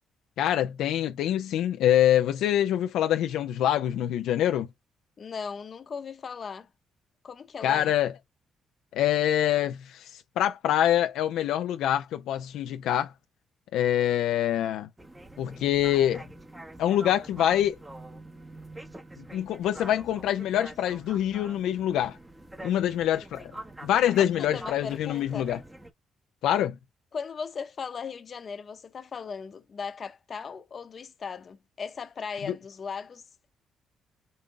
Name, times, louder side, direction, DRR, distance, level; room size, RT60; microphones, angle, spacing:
voice 1, 0.4-4.7 7.6-8.1 8.9-13.1 13.7-14.9 15.4-16.2 16.8-17.8 19.2-22.2 22.6-23.5 23.8-25.6 26.4-26.8 32.5-32.6, left 11 dB, 85° left, 0.4 m, -25 dB
voice 2, 5.2-6.7 7.2-7.9 24.2-25.5 27.1-33.2, left 6 dB, 45° left, 0.8 m, -37 dB
sound 1, 15.0-25.9, right 1 dB, 15° right, 0.9 m, -45 dB
5.5 x 2.2 x 3.7 m
cardioid pair, 90°, 0 cm